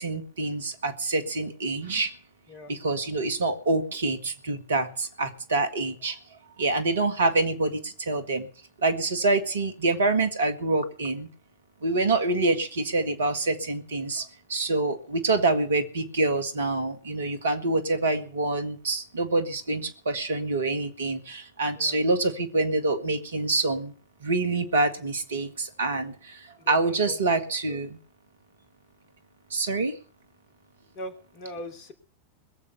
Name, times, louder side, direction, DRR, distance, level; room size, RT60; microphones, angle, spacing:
voice 1, 0.0-2.1 2.7-6.2 6.6-8.5 8.8-11.3 11.8-23.9 24.2-28.0 29.5-30.0, right 2 dB, 65° right, 8 dB, 2.1 m, -26 dB
voice 2, 26.6-27.4 27.7-27.8 30.9-31.9, left 1 dB, 40° left, 6 dB, 3.1 m, -41 dB
21.0 x 7.4 x 6.8 m, 0.41 s
figure-of-eight pair, 90°, 0 cm